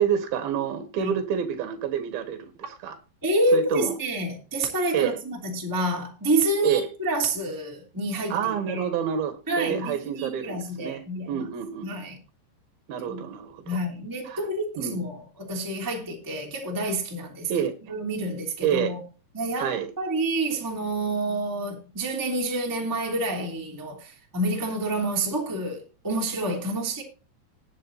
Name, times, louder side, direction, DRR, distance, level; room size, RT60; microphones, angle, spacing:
voice 1, 0.0-3.0 3.5-3.9 4.9-5.2 6.6-6.9 8.3-11.9 12.9-13.8 14.2-14.4 14.8-15.0 17.5-17.7 18.6-18.9 19.6-19.9, right 8 dB, 65° right, 3.1 m, -28 dB
voice 2, 3.2-8.8 9.5-11.4 11.8-12.2 13.1-13.2 13.6-19.0 19.3-27.0, right 1 dB, 5° right, 2.1 m, -28 dB
20.0 x 7.6 x 2.7 m
omnidirectional pair, 5.2 m